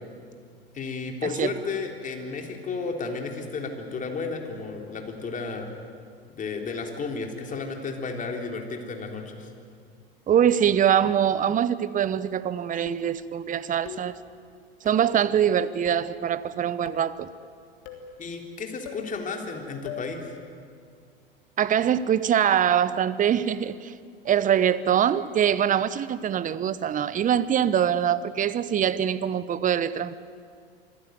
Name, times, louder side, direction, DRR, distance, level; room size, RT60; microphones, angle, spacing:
voice 1, 0.7-5.7 6.3-9.5 18.2-20.3, left 4 dB, 25° left, 3.6 m, -33 dB
voice 2, 10.3-14.2 14.8-17.3 21.6-23.9 24.2-30.2, right 9 dB, 25° right, 0.9 m, -23 dB
sound 1, 12.9-13.3 13.8-14.2 14.8-15.2 15.8-16.2 16.9-17.2 17.8-18.1 18.8-19.1 19.8-20.1, left 7 dB, 55° left, 3.4 m, -40 dB
25.0 x 16.0 x 9.4 m
hypercardioid pair, 85°, 30 cm